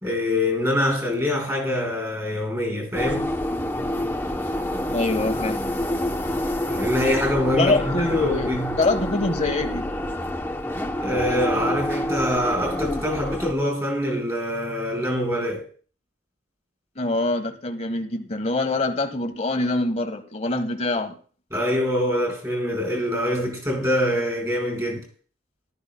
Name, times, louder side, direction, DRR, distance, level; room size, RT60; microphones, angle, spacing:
voice 1, 0.0-3.3 6.7-8.7 11.0-15.6 21.5-25.0, left 1 dB, 15° right, 4.8 m, -24 dB
sound 1, 2.9-13.5, left 1 dB, 10° left, 0.8 m, -27 dB
voice 2, 4.9-5.6 7.6-9.9 16.9-21.2, left 2 dB, 35° left, 1.4 m, -24 dB
18.5 x 13.0 x 2.3 m
head